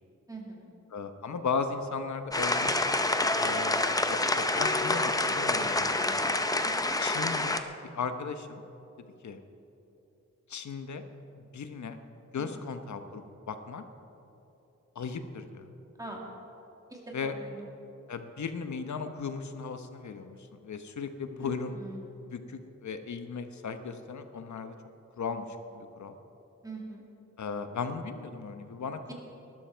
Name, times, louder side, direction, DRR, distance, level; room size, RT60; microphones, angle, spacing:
voice 1, 0.3-0.7 6.6-6.9 12.4-12.7 16.0-16.2 16.9-17.7 21.4-22.0 26.6-27.0 29.1-29.2, right 2 dB, 10° right, -2 dB, 2.2 m, -43 dB
voice 2, 0.9-2.8 3.4-6.3 7.0-7.6 7.9-8.6 9.2-9.4 10.5-11.0 11.5-12.0 12.3-13.8 14.9-15.7 17.1-17.3 18.1-20.4 20.6-21.7 22.3-24.7 25.2-25.5 25.7-26.2 27.4-29.1, left 5 dB, 75° left, 8 dB, 1.0 m, -36 dB
sound 1, 2.3-7.6, left 2 dB, 10° left, 0.6 m, -27 dB
19.5 x 12.5 x 4.5 m, 2.9 s
wide cardioid pair, 160°, 29 cm